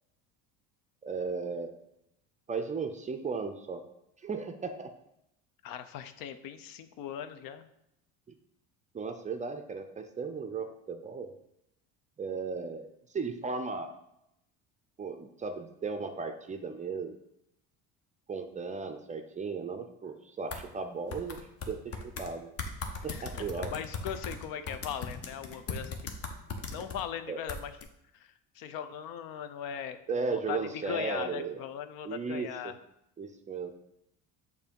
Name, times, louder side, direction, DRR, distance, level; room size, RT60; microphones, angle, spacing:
voice 1, 1.0-1.7 2.5-3.8 4.2-4.9 8.9-11.3 12.2-14.0 15.0-17.2 18.3-21.4 21.6-22.5 23.0-23.7 27.3-27.4 30.1-31.6 32.0-32.7 33.2-33.7, right 4 dB, 20° right, 7 dB, 0.4 m, -36 dB
voice 2, 5.6-7.7 23.1-26.0 26.7-27.7 28.1-32.7, left 9 dB, 70° left, 10 dB, 0.6 m, -39 dB
sound 1, 20.5-20.6 21.1-22.3 22.6-27.0 27.5-27.8, left 4 dB, 40° left, 0.9 m, -38 dB
6.7 x 2.7 x 5.2 m, 0.82 s
cardioid pair, 115°, 37 cm